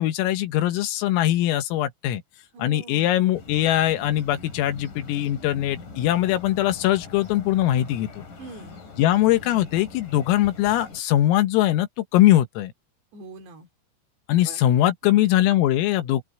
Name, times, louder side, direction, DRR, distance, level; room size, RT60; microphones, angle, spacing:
voice 1, 0.0-2.2 2.6-8.2 9.0-11.9 12.1-12.7 14.3-16.2, left 13 dB, 90° left, 4.1 m, -21 dB
voice 2, 2.5-3.2 8.4-8.8 13.1-13.7 14.5-14.6 15.0-15.5, right 3 dB, 60° right, 4.6 m, -43 dB
sound 1, 3.3-11.0, left 3 dB, 40° left, 5.8 m, -43 dB
open air
omnidirectional pair, 5.9 m